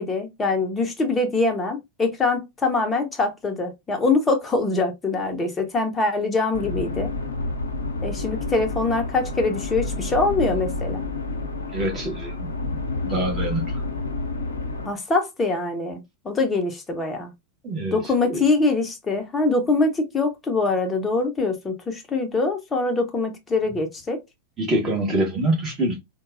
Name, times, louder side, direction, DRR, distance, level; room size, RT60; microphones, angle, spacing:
voice 1, 0.0-7.1 8.0-11.0 14.9-17.3 17.9-24.2, left 3 dB, 15° left, 0.8 m, -23 dB
sound 1, 6.5-14.9, left 3 dB, 75° left, 0.6 m, -29 dB
voice 2, 11.7-12.5 13.0-13.7 17.6-18.0 18.2-18.4 24.6-26.0, right 1 dB, 25° right, 1.3 m, -25 dB
3.9 x 2.2 x 2.4 m
figure-of-eight pair, 90°, 0 cm